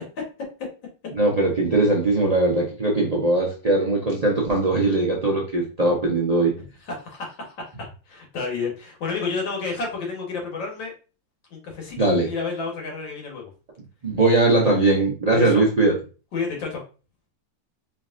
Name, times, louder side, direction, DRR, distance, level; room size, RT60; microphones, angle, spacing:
voice 1, 1.1-6.5 12.0-12.3 14.0-15.9, right 2 dB, 55° right, -3 dB, 0.4 m, -20 dB
voice 2, 6.6-7.7 8.1-10.9 11.5-13.5 15.4-15.6 16.3-16.8, left 4 dB, 90° left, 0 dB, 2.0 m, -30 dB
4.6 x 3.2 x 2.5 m, 0.35 s
omnidirectional pair, 1.9 m